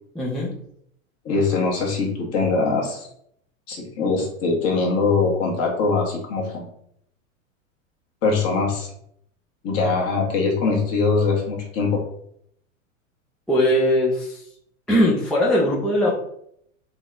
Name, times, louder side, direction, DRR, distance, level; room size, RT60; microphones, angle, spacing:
voice 1, 0.1-0.5 13.5-14.4 14.9-16.1, equal, ahead, -5 dB, 0.4 m, -20 dB
voice 2, 1.2-3.1 3.7-6.7 8.2-8.9 9.6-12.0, left 4 dB, 40° left, 0 dB, 1.3 m, -22 dB
4.0 x 2.3 x 3.7 m, 0.70 s
hypercardioid pair, 120°, 39 cm